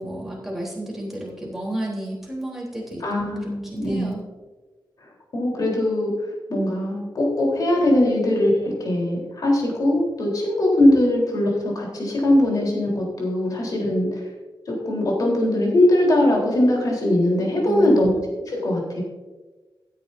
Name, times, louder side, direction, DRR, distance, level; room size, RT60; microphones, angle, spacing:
voice 1, 0.0-3.0 3.4-4.2 17.6-18.2, right 1 dB, 5° right, -5 dB, 3.5 m, -31 dB
voice 2, 3.0-4.2 5.3-6.1 6.5-14.2 14.7-18.1 18.5-19.0, left 1 dB, 50° left, -2 dB, 3.8 m, -21 dB
16.0 x 10.5 x 2.7 m, 1.3 s
wide cardioid pair, 170°, 8 cm